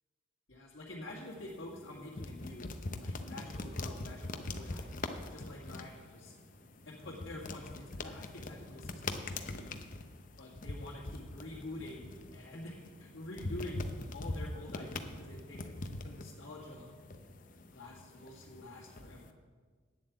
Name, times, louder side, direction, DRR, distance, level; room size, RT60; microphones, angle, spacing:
voice 1, 0.5-2.7 3.0-6.3 6.9-9.7 10.4-15.8 16.0-16.9 17.7-19.3, left 1 dB, 70° left, -6 dB, 1.8 m, -47 dB
sound 1, 1.1-19.3, left 2 dB, 40° left, 0.7 m, -43 dB
9.3 x 7.5 x 8.2 m, 1.5 s
head